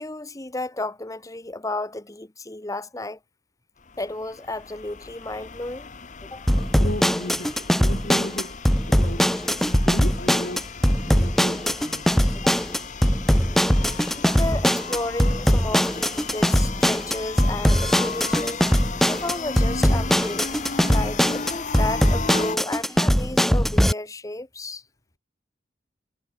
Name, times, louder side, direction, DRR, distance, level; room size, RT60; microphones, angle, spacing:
voice 1, 0.0-3.2 4.0-5.9 6.2-6.4 12.4-12.6 14.1-18.6 19.1-20.5 20.9-24.8, left 2 dB, 20° left, 1.2 m, -32 dB
sound 1, 3.8-22.6, left 5 dB, 45° left, 1.1 m, -35 dB
sound 2, 6.5-23.9, equal, ahead, 1.0 m, -21 dB
voice 2, 6.6-8.6 8.9-12.4, left 1 dB, 60° left, 4.4 m, -36 dB
head